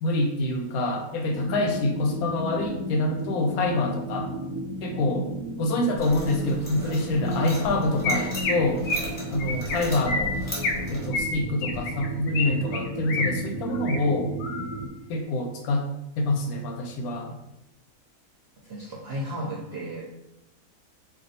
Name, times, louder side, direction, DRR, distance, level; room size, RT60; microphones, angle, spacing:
voice 1, 0.0-4.3 4.8-5.3 5.6-8.8 9.3-10.5 10.9-14.3 15.1-15.8 16.2-17.3, left 2 dB, 90° left, 2 dB, 1.1 m, -26 dB
sound 1, 1.3-14.9, right 1 dB, 85° right, 1.1 m, -34 dB
sound 2, 6.0-11.1, equal, 20° left, 0.7 m, -39 dB
Chirp tweet, 8.0-8.5 8.8-9.1 9.4-9.8 10.1-10.8 11.1-12.5 12.7-13.3 13.7-14.0 14.4-14.8, left 3 dB, 70° left, 0.9 m, -28 dB
voice 2, 18.6-20.0, equal, 60° right, -4 dB, 0.7 m, -34 dB
2.5 x 2.3 x 3.9 m, 0.88 s
omnidirectional pair, 1.5 m